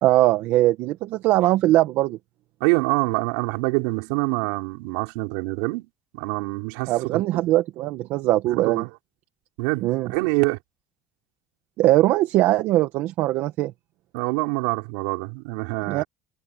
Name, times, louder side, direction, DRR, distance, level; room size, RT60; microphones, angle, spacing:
voice 1, 0.0-2.2 6.9-8.8 9.8-10.1 11.8-13.7 15.9-16.0, right 16 dB, 65° right, 1.4 m, -21 dB
voice 2, 2.6-5.9 6.1-7.5 8.5-8.9 9.6-10.6 14.1-16.0, right 28 dB, 85° right, 5.6 m, -25 dB
cardioid pair, 115°, 4 cm